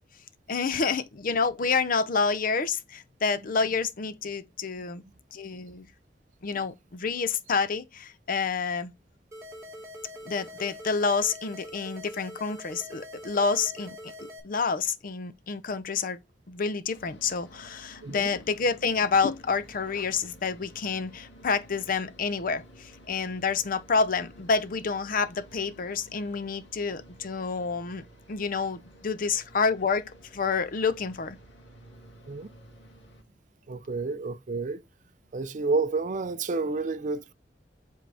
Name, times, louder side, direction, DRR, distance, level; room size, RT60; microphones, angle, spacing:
voice 1, 0.5-5.0 5.3-5.9 6.4-8.9 10.3-14.1 14.4-16.2 16.5-31.4, left 5 dB, 50° left, 0.6 m, -28 dB
sound 1, 9.3-14.4, left 1 dB, 15° right, 1.9 m, -44 dB
sound 2, 16.9-33.2, equal, 85° left, 1.9 m, -52 dB
voice 2, 33.7-34.8 35.3-37.3, right 3 dB, 45° right, 0.5 m, -30 dB
7.6 x 3.8 x 3.4 m
head